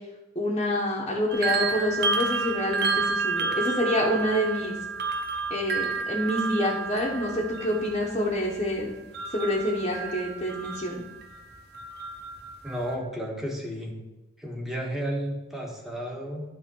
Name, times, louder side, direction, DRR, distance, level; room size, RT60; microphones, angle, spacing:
voice 1, 0.3-4.8 5.5-8.9 9.3-11.0, left 1 dB, 25° left, -6 dB, 1.2 m, -27 dB
sound 1, 1.3-11.4 11.7-12.9, right 4 dB, 55° right, 0.9 m, -31 dB
voice 2, 12.6-13.9 14.4-16.4, equal, ahead, -2 dB, 1.5 m, -32 dB
11.0 x 3.6 x 5.5 m, 1.0 s
head